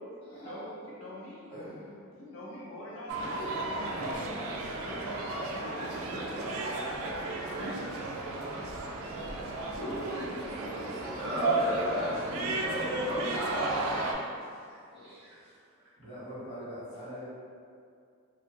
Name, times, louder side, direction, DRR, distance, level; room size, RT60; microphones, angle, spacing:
voice 1, 0.2-1.5 2.1-3.6 4.3-6.0 6.5-7.0 8.5-8.7 9.5-10.0 14.9-15.1, equal, 65° left, -7 dB, 0.6 m, -43 dB
voice 2, 1.5-2.0 3.9-4.5 16.0-17.3, equal, 30° left, -17 dB, 1.2 m, -43 dB
sound 1, 3.1-14.1, right 2 dB, 75° right, 0.3 m, -33 dB
voice 3, 3.9-4.6 5.9-6.3 7.5-7.8 10.1-10.2 10.6-13.3 13.6-14.4 14.9-15.4, equal, 5° right, -12 dB, 0.5 m, -37 dB
2.6 x 2.3 x 2.8 m, 2.3 s
head